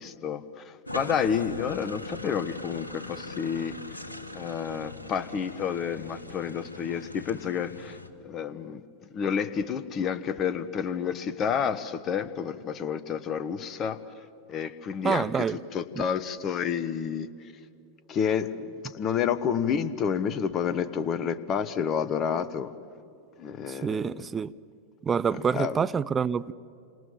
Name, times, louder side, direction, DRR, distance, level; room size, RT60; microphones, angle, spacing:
voice 1, 0.0-4.0 4.3-8.0 8.2-8.8 9.1-14.0 14.5-15.3 15.7-17.3 18.1-22.7 23.4-24.1 25.5-25.8, left 7 dB, 30° left, 1.2 m, -30 dB
sound 1, 0.9-8.1, left 1 dB, 80° left, 1.7 m, -41 dB
voice 2, 15.0-15.6 16.0-16.1 23.7-24.5 25.0-26.5, right 6 dB, 20° right, 0.6 m, -27 dB
28.5 x 26.5 x 7.4 m
figure-of-eight pair, 90°, 0 cm